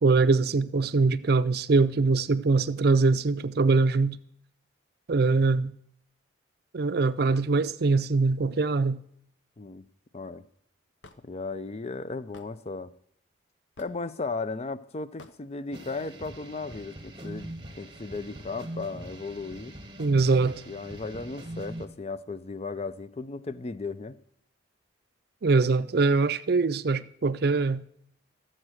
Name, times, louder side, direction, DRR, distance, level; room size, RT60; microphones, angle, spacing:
voice 1, 0.0-4.2 5.1-5.7 6.7-9.0 20.0-20.6 25.4-27.8, right 3 dB, 55° right, 0.5 m, -23 dB
Hammer / Wood, 11.0-11.2 12.3-12.5 13.8-14.1 15.2-15.4, left 2 dB, 65° left, 0.9 m, -49 dB
voice 2, 11.2-12.9 13.8-19.7 20.7-24.2, left 3 dB, 35° left, 0.4 m, -36 dB
sound 1, 15.7-21.9, right 1 dB, 25° right, 1.3 m, -42 dB
13.5 x 7.7 x 6.3 m
head